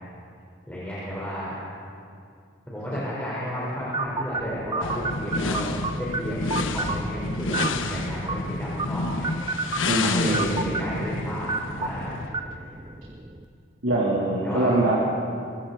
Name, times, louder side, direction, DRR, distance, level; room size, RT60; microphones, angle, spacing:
voice 1, 0.7-1.5 2.7-9.3 9.9-12.2 12.5-12.7 14.4-14.8, equal, 10° left, -9 dB, 4.6 m, -32 dB
sound 1, 3.9-13.4, right 3 dB, 25° right, 0.7 m, -33 dB
sound 2, 4.8-12.4, left 2 dB, 80° left, 1.3 m, -29 dB
voice 2, 9.9-10.5 13.8-15.0, right 2 dB, 90° right, -5 dB, 3.6 m, -23 dB
25.5 x 24.0 x 4.3 m, 2.4 s
head